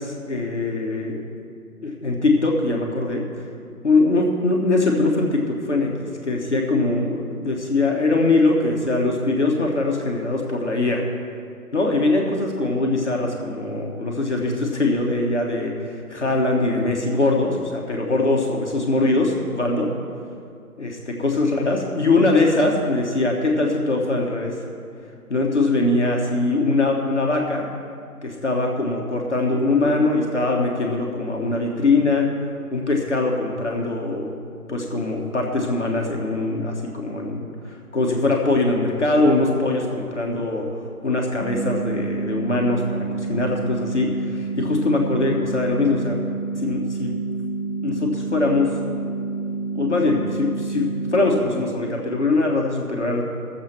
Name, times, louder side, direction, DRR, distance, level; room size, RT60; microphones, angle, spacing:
voice 1, 0.0-1.3 1.8-3.2 3.8-5.9 6.2-11.0 11.7-19.9 20.8-24.6 25.3-27.7 28.2-32.3 32.7-34.4 34.7-46.2 46.5-47.2 47.8-48.7 49.7-53.2, left 2 dB, 50° left, 0 dB, 1.3 m, -22 dB
sound 1, 41.4-51.4, right 3 dB, 5° right, 1.3 m, -28 dB
17.0 x 7.3 x 4.5 m, 2.4 s
figure-of-eight pair, 160°, 46 cm